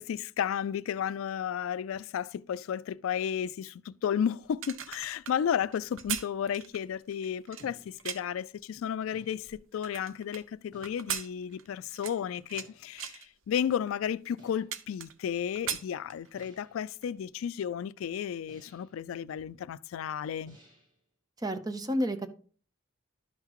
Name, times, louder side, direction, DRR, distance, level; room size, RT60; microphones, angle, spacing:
voice 1, 0.0-20.6, left 8 dB, 80° left, 0.3 m, -33 dB
sound 1, 4.4-8.4 9.0-10.4 10.8-12.7 13.0-13.3 13.9-14.0 14.3-15.3 15.5-16.5 16.9-17.1, right 9 dB, 70° right, 0.6 m, -39 dB
sound 2, 7.6-8.2 9.1-9.8 10.7-11.3 12.5-13.0 14.4-14.9 16.4-16.9 18.5-19.0 20.5-21.0, equal, 40° right, 2.5 m, -58 dB
voice 2, 21.4-22.3, equal, 20° right, 0.6 m, -30 dB
11.5 x 5.8 x 3.0 m
head